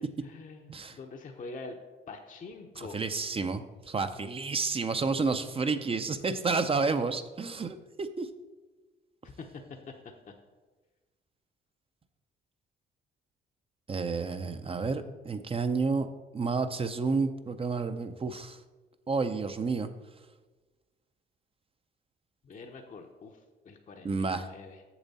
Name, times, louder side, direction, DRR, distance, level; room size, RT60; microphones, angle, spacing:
voice 1, 0.0-1.8 2.1-3.0 9.2-9.5 9.9-10.0 22.4-24.8, left 3 dB, 40° left, 3 dB, 0.7 m, -45 dB
voice 2, 2.8-8.3 13.9-16.1 16.3-18.6 19.1-19.9 24.0-24.5, right 4 dB, 30° right, 9 dB, 0.6 m, -30 dB
7.2 x 7.0 x 4.1 m, 1.3 s
cardioid pair, 90°, 20 cm